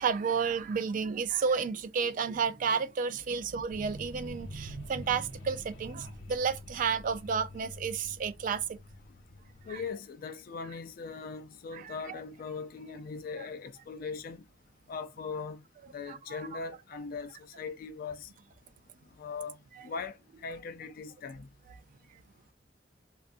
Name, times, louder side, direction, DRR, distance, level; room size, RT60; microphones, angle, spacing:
voice 1, 0.0-8.8 9.7-9.8 11.7-12.1 13.4-13.5 16.1-16.5 19.8-19.9, right 6 dB, 50° right, 0.3 m, -31 dB
sound 1, 3.7-9.9, left 2 dB, 80° left, 0.8 m, -48 dB
voice 2, 9.7-14.4 14.9-15.6 15.9-17.3 17.6-18.3 19.2-19.6 19.8-20.2 20.4-21.5, left 5 dB, 50° left, 0.3 m, -40 dB
2.5 x 2.4 x 2.4 m
head